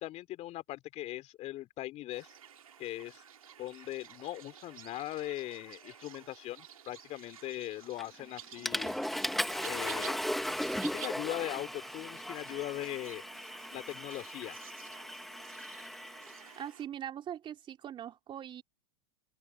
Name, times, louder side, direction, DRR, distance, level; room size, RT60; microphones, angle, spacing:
voice 1, 0.0-2.3 2.8-3.2 3.6-9.0 9.6-10.2 10.9-13.2 13.7-14.6, left 15 dB, 40° left, 3.6 m, -40 dB
sound 1, 2.1-16.9, right 8 dB, 85° right, 2.7 m, -52 dB
Water / Toilet flush, 8.0-8.2 8.7-16.5, equal, ahead, 1.6 m, -37 dB
voice 2, 16.5-18.6, right 10 dB, 30° right, 3.3 m, -41 dB
open air
hypercardioid pair, 110°, 17 cm